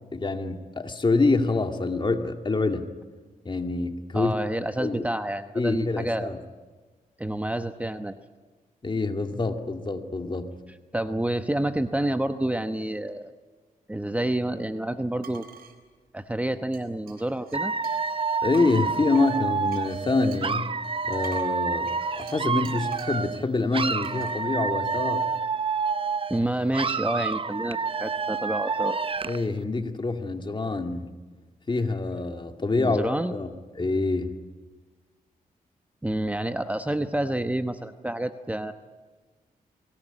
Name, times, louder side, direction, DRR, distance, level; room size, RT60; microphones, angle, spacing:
voice 1, 0.1-2.9 3.5-4.3 4.8-5.0 5.6-6.4 8.8-10.5 18.4-20.8 21.0-21.9 22.2-25.3 29.3-31.1 31.7-33.5 33.8-34.4, left 3 dB, 30° left, 5 dB, 2.1 m, -26 dB
voice 2, 4.1-6.3 7.2-8.2 10.9-13.3 13.9-15.4 16.1-17.7 26.3-29.0 32.8-33.3 36.0-38.7, right 1 dB, 10° right, 9 dB, 1.0 m, -28 dB
sound 1, 15.2-15.8 16.7-18.2 18.5-23.2 24.0-24.4, right 7 dB, 80° right, 3.7 m, -48 dB
Dog / Alarm, 17.5-23.4 23.7-26.4 26.7-29.5, right 5 dB, 35° right, 0.7 m, -28 dB
23.5 x 18.0 x 10.0 m, 1.4 s
cardioid pair, 80°, 15 cm